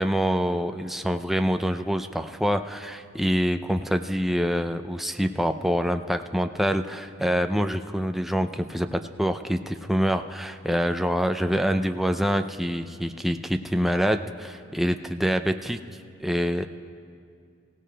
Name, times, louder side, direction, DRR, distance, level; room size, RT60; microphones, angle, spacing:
voice 1, 0.0-15.8 16.2-16.7, equal, ahead, 7 dB, 0.4 m, -26 dB
28.5 x 16.5 x 2.2 m, 2.3 s
head